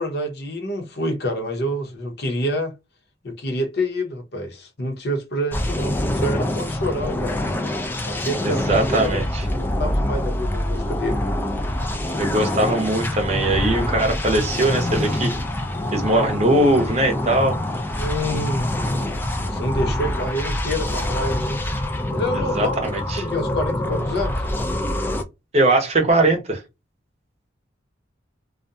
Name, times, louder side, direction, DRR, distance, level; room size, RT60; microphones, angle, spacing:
voice 1, 0.0-2.7 3.2-7.4 8.1-11.3 18.0-18.7 19.5-21.6 22.1-24.5, equal, 55° left, 0.8 m, -27 dB
sound 1, 5.5-25.2, left 1 dB, 10° left, 0.3 m, -25 dB
voice 2, 8.4-9.4 12.2-15.3 15.9-17.6 22.3-23.2 25.5-26.6, right 1 dB, 35° right, 0.7 m, -20 dB
2.4 x 2.2 x 2.6 m
head